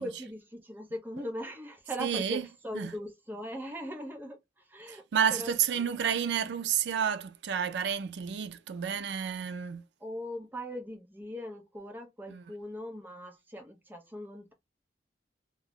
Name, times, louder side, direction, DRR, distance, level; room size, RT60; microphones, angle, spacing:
voice 1, 0.0-5.0 5.3-5.8 10.0-14.5, equal, 10° right, 0.5 m, -40 dB
voice 2, 2.0-2.4 2.7-2.9 4.9-9.9 12.3-12.4, right 8 dB, 80° right, 0.4 m, -30 dB
2.2 x 2.0 x 3.4 m
head